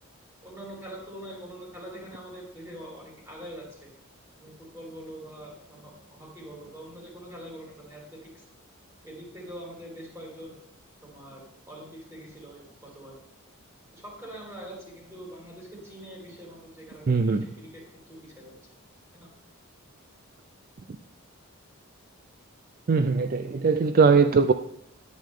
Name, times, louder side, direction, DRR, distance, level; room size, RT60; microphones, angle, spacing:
voice 1, 0.4-3.9 4.4-8.4 9.0-10.6 11.0-13.1 13.9-18.5 19.1-19.3, right 1 dB, 10° right, -3 dB, 3.6 m, -44 dB
voice 2, 17.1-17.5 22.9-24.5, right 4 dB, 40° right, 10 dB, 0.4 m, -20 dB
10.5 x 9.4 x 3.6 m, 0.77 s
head